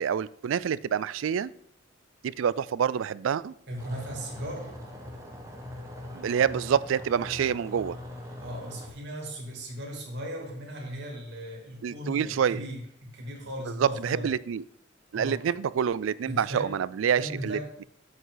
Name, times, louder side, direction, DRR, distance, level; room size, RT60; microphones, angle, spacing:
voice 1, 0.0-1.5 2.2-3.5 6.1-8.0 11.8-12.6 13.7-14.6 15.1-17.8, right 8 dB, 80° right, 19 dB, 0.3 m, -27 dB
voice 2, 3.7-4.7 8.4-14.3 15.1-15.4 16.2-16.7 17.2-17.7, equal, 60° right, -1 dB, 2.8 m, -37 dB
sound 1, 3.8-8.9, left 1 dB, 15° right, 1.3 m, -41 dB
7.9 x 7.8 x 3.9 m, 0.73 s
head